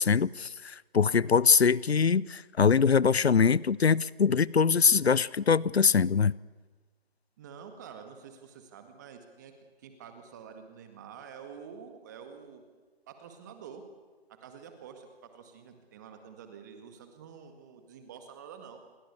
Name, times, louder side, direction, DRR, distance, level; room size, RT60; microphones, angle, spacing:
voice 1, 0.0-6.3, left 6 dB, 90° left, 0.8 m, -23 dB
voice 2, 7.4-9.5 9.8-12.6 13.1-13.8 14.3-18.8, right 7 dB, 20° right, 2.0 m, -48 dB
28.5 x 22.5 x 8.4 m
figure-of-eight pair, 165°, 31 cm